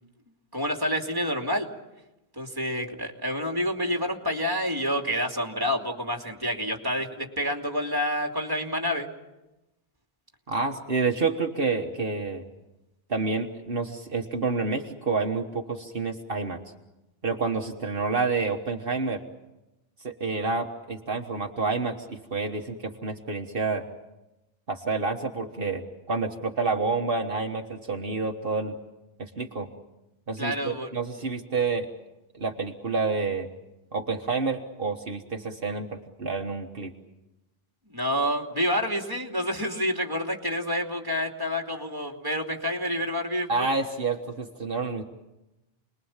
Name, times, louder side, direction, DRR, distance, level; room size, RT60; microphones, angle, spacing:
voice 1, 0.5-1.7 2.4-9.1 30.4-30.9 37.9-43.7, equal, 20° right, 2 dB, 2.8 m, -28 dB
voice 2, 10.5-12.4 13.1-16.6 17.2-19.2 20.0-23.8 24.7-28.8 29.2-29.7 30.3-31.9 32.3-33.5 33.9-36.9 43.5-45.0, right 4 dB, 60° right, 3 dB, 1.6 m, -29 dB
29.5 x 21.5 x 7.3 m, 0.98 s
omnidirectional pair, 1.0 m